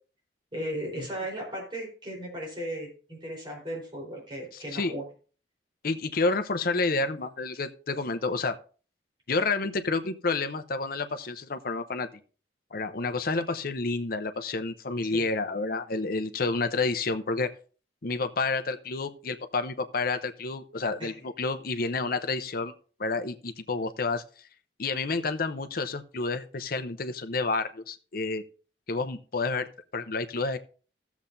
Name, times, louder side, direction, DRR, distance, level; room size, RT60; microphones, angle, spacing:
voice 1, 0.5-5.0 15.1-15.3 21.0-21.1, equal, 30° right, -2 dB, 4.0 m, -36 dB
voice 2, 4.5-4.9 5.8-8.5 9.3-12.1 12.7-17.5 18.0-22.7 23.0-24.2 24.8-28.4 28.9-29.7 29.9-30.6, left 3 dB, 55° left, 9 dB, 0.7 m, -29 dB
16.0 x 7.2 x 2.7 m, 0.38 s
head